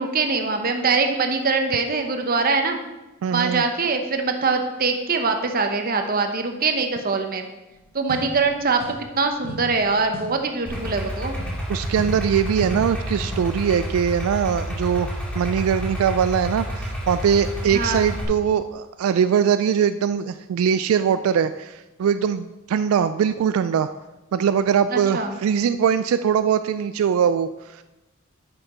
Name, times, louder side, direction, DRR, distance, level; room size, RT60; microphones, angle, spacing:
voice 1, 0.0-2.8 3.3-7.5 7.9-11.4 17.7-18.0 24.9-25.3, right 4 dB, 45° right, 5 dB, 0.9 m, -23 dB
voice 2, 3.2-3.6 11.7-23.9 24.3-27.8, right 7 dB, 85° right, 12 dB, 0.3 m, -21 dB
sound 1, 7.7-7.8 8.1-9.2 9.4-13.6, left 1 dB, 65° left, 1.4 m, -38 dB
Idling, 10.7-18.2, equal, 5° left, 2.0 m, -30 dB
8.8 x 6.9 x 4.3 m, 1.0 s
head